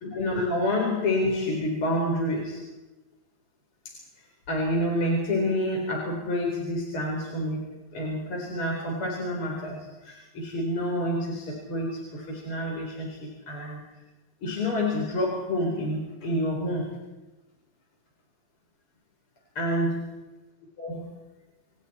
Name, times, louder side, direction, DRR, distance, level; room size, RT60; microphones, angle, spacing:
voice 1, 0.0-2.6 4.5-7.7 7.9-9.8 10.0-13.8 14.4-16.9 19.5-20.0 20.8-21.1, left 1 dB, 45° left, -1 dB, 5.1 m, -28 dB
28.0 x 28.0 x 4.4 m, 1.1 s
omnidirectional pair, 3.4 m